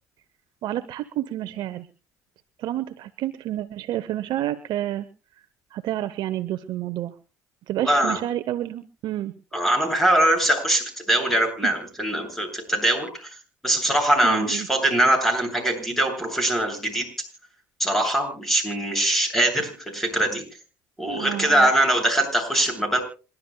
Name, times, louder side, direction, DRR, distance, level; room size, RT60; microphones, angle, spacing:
voice 1, 0.6-1.9 2.6-5.1 5.7-7.1 7.7-9.3 11.6-11.7 14.2-14.7 21.1-21.7, right 13 dB, 60° right, 10 dB, 1.0 m, -29 dB
voice 2, 7.8-8.2 9.5-13.3 13.6-17.1 17.8-20.4 21.0-23.0, right 1 dB, 5° left, 4 dB, 7.7 m, -22 dB
27.5 x 12.0 x 2.3 m, 0.33 s
hypercardioid pair, 75°, 9 cm